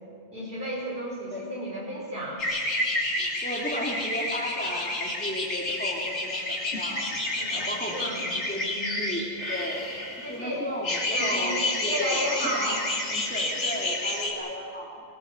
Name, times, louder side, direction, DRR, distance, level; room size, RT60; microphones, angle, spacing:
voice 1, 0.3-2.5 7.4-8.2 10.2-10.7 11.1-12.8, right 1 dB, 55° right, -4 dB, 5.2 m, -33 dB
sound 1, 2.4-10.4 10.8-14.3, left 2 dB, 85° left, 3.4 m, -30 dB
voice 2, 3.2-7.0 7.5-9.8 10.2-12.8 13.1-15.1, equal, 10° left, -4 dB, 2.3 m, -35 dB
22.5 x 19.0 x 6.9 m, 2.4 s
omnidirectional pair, 1.2 m